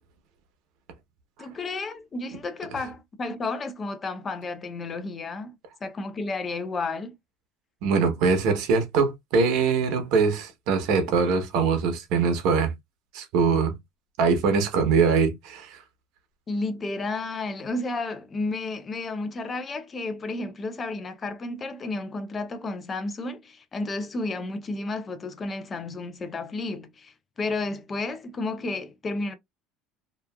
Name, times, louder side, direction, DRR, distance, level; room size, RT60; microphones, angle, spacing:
voice 1, 1.4-5.6 5.8-7.2 16.5-29.3, left 3 dB, 25° left, 0.6 m, -32 dB
voice 2, 7.8-12.7 13.1-13.7 14.2-15.8, right 5 dB, 70° right, 1.0 m, -22 dB
3.0 x 2.5 x 2.3 m
cardioid pair, 130°, 0 cm